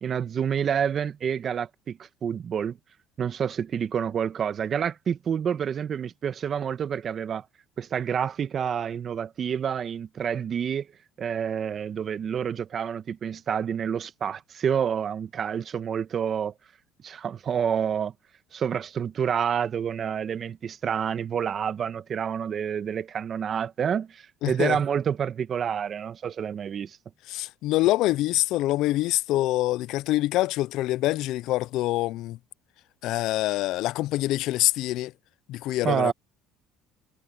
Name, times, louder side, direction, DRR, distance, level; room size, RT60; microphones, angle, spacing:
voice 1, 0.0-2.8 3.2-7.4 7.8-10.9 11.2-16.5 17.0-18.1 18.5-27.0 35.8-36.1, right 8 dB, 45° right, 1.4 m, -28 dB
voice 2, 24.4-24.8 27.3-32.4 33.0-35.1 35.5-36.1, left 16 dB, 70° left, 0.5 m, -25 dB
supercardioid pair, 95°, 0 cm